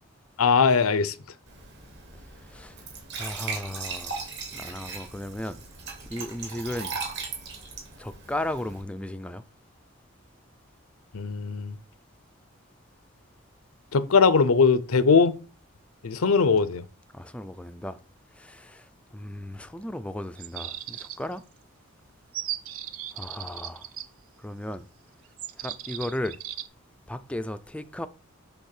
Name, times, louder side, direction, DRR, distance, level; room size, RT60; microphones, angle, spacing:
voice 1, 0.4-1.1 11.1-11.7 13.9-15.3 16.0-16.8, left 5 dB, 80° left, 0.6 m, -20 dB
Glass / Trickle dribble / Fill (with liquid), 1.5-8.8, right 4 dB, 55° right, 2.6 m, -38 dB
voice 2, 3.1-4.2 4.5-5.6 6.1-7.0 8.0-9.4 17.1-18.0 18.3-21.4 23.1-23.9 24.4-24.9 25.6-26.4 27.1-28.1, left 1 dB, 5° left, 0.4 m, -35 dB
sound 1, 20.3-21.4 22.3-24.0 25.4-26.7, right 11 dB, 75° right, 0.6 m, -36 dB
8.0 x 3.5 x 6.6 m
head